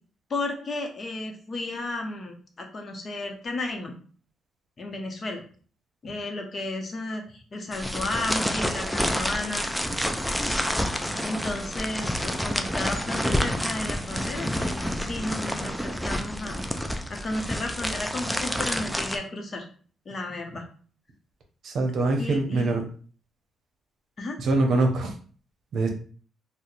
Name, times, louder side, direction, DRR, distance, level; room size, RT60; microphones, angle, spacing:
voice 1, 0.3-3.9 4.8-5.4 6.0-9.7 11.2-16.6 17.1-19.6 20.1-20.6 22.2-22.8 24.2-24.4, left 2 dB, 40° left, 3 dB, 0.7 m, -33 dB
sound 1, 7.7-19.2, equal, ahead, 0.4 m, -29 dB
voice 2, 21.6-22.8 24.4-25.1 25.7-25.9, right 2 dB, 65° right, 4 dB, 0.7 m, -23 dB
2.7 x 2.1 x 3.9 m, 0.43 s
cardioid pair, 90°, 0 cm